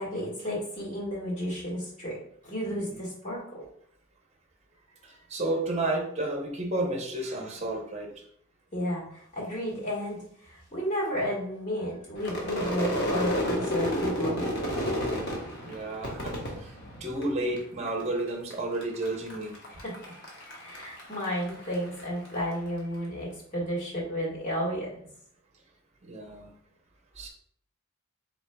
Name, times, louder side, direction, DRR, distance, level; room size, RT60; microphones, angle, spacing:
voice 1, 0.0-2.2 2.4-3.6 8.7-14.7 19.7-20.1 20.6-24.9, equal, 35° left, -5 dB, 1.6 m, -32 dB
voice 2, 5.0-8.1 15.6-19.5 26.0-26.5 27.2-27.3, right 2 dB, 30° right, 1 dB, 0.7 m, -32 dB
Crowd / Fireworks, 12.2-17.6 17.9-18.5 18.8-22.4, equal, 50° left, 1.1 m, -31 dB
4.3 x 4.0 x 2.2 m, 0.65 s
head